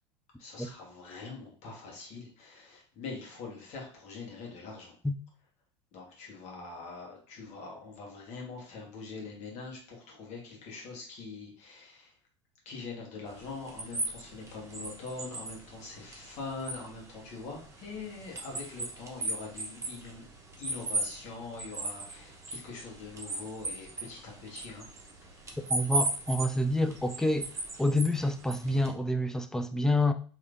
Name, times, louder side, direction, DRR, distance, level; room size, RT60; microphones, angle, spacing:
voice 1, 0.4-5.0 5.9-12.1 12.6-20.2 20.6-24.9, left 4 dB, 50° left, 1.4 m, -43 dB
sound 1, 13.3-28.9, right 2 dB, 20° right, 0.9 m, -38 dB
voice 2, 25.7-27.5 27.8-30.1, left 1 dB, 5° left, 0.3 m, -28 dB
3.1 x 2.8 x 2.5 m
hypercardioid pair, 85°, 15 cm